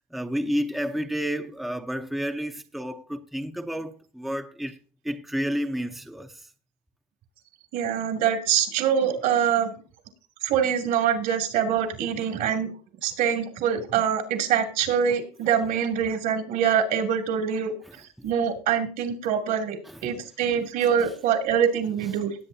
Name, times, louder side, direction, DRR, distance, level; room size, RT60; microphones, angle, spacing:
voice 1, 0.1-4.8 5.0-6.5 18.2-18.3 19.9-20.0 20.5-20.7, equal, ahead, 0.7 m, -30 dB
voice 2, 7.7-9.7 10.4-12.7 13.0-17.7 18.2-22.3, right 8 dB, 70° right, 2.7 m, -24 dB
19.0 x 8.3 x 2.7 m
cardioid pair, 130°, 16 cm